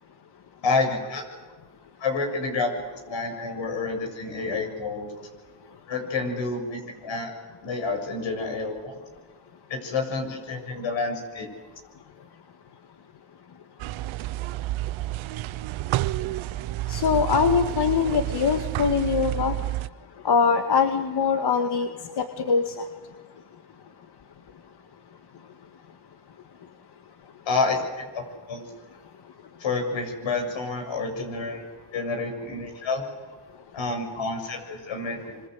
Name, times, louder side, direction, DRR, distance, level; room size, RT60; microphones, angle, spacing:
voice 1, 0.6-1.2 2.0-2.8 3.1-5.1 5.9-7.3 7.6-9.0 9.7-11.5 27.5-28.6 29.6-31.6 31.9-33.0 33.7-35.3, left 3 dB, 75° left, 3 dB, 7.4 m, -29 dB
sound 1, 13.8-19.9, right 16 dB, 80° right, 0.8 m, -30 dB
voice 2, 16.9-19.5 20.2-21.9 22.2-22.8, left 6 dB, 55° left, 6 dB, 2.0 m, -22 dB
26.0 x 26.0 x 8.1 m, 1.4 s
supercardioid pair, 65°, 46 cm